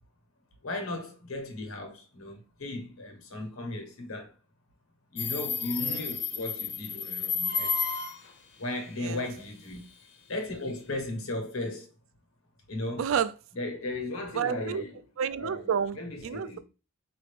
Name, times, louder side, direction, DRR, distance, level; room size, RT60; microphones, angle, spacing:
voice 1, 0.6-4.3 5.1-7.7 8.6-9.8 10.3-11.9 12.7-13.1 13.6-14.9 15.4-15.6 16.0-16.6, left 2 dB, 90° left, 1.1 m, -36 dB
Subway metro underground, 5.2-8.3, left 5 dB, 55° left, 0.7 m, -31 dB
voice 2, 13.0-13.3 14.3-14.8 15.2-16.6, right 7 dB, 70° right, 0.4 m, -30 dB
4.4 x 2.6 x 3.3 m
head